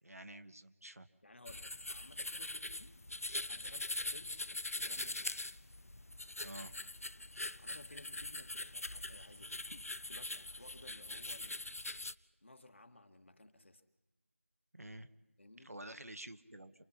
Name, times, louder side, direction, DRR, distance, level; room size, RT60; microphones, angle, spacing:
voice 1, 0.0-1.1 6.4-6.7 14.7-15.1 15.6-16.7, right 1 dB, 90° right, 10 dB, 1.6 m, -49 dB
voice 2, 1.2-3.0 3.5-5.4 7.6-9.6 10.1-11.6 12.4-13.8 15.4-15.7, left 2 dB, 55° left, 8 dB, 1.8 m, -58 dB
sound 1, 1.5-12.1, left 2 dB, 85° left, 0.8 m, -42 dB
27.5 x 19.0 x 5.8 m, 1.1 s
figure-of-eight pair, 175°, 8 cm